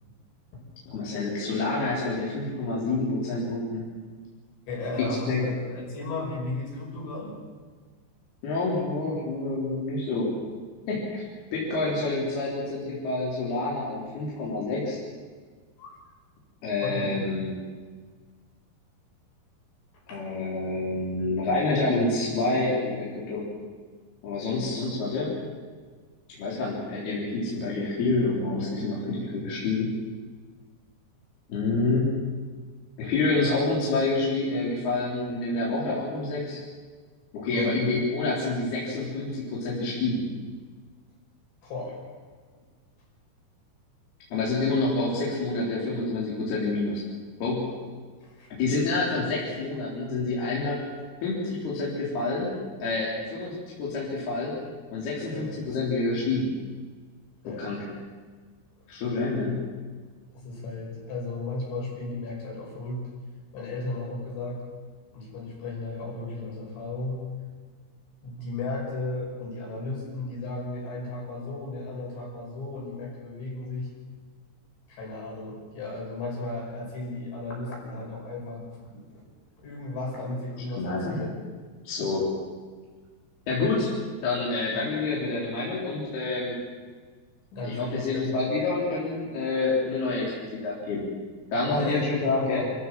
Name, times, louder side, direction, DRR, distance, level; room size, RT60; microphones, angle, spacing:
voice 1, 0.9-3.8 5.0-5.5 8.4-10.3 10.9-11.2 11.5-15.0 16.6-17.5 20.1-23.4 24.2-25.3 26.4-29.9 31.5-32.1 33.0-36.6 37.3-40.2 44.3-47.0 47.4-47.7 48.6-50.9 51.2-52.5 52.8-54.5 54.9-56.5 57.6-57.9 58.9-59.7 80.8-81.2 81.9-82.3 83.5-83.9 84.2-86.6 87.6-91.0 91.5-92.6, left 3 dB, 60° left, -5 dB, 5.4 m, -28 dB
voice 2, 4.7-7.4 15.8-16.0 16.8-17.3 20.1-20.2 37.5-37.7 41.6-42.0 47.7-47.8 48.2-48.5 55.3-55.5 57.4-57.8 58.8-58.9 60.3-63.0 63.5-64.6 65.1-67.3 68.2-73.9 74.9-78.6 78.9-79.2 79.6-81.3 84.7-84.9 87.5-88.5 91.7-92.7, left 2 dB, 75° left, -3 dB, 8.0 m, -35 dB
27.5 x 14.5 x 7.5 m, 1.5 s
omnidirectional pair, 5.2 m